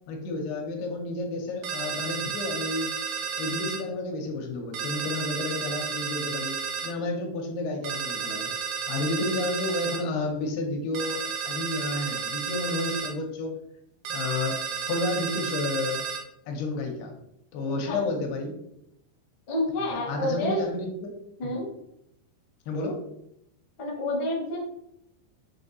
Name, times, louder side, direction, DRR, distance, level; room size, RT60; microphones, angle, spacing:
voice 1, 0.1-3.0 3.4-8.5 8.9-13.6 14.1-16.1 16.5-17.2 17.5-18.6 20.1-21.1 21.4-21.6 22.7-23.0, left 2 dB, 85° left, 2 dB, 2.6 m, -31 dB
sound 1, 1.6-3.8 4.7-6.9 7.8-10.0 11.0-13.1 14.1-16.2, right 6 dB, 85° right, 2.5 m, -32 dB
voice 2, 17.7-18.0 19.5-20.6 21.4-21.7 23.8-24.6, left 1 dB, 70° left, -5 dB, 1.1 m, -29 dB
6.2 x 2.6 x 2.6 m, 0.78 s
omnidirectional pair, 4.6 m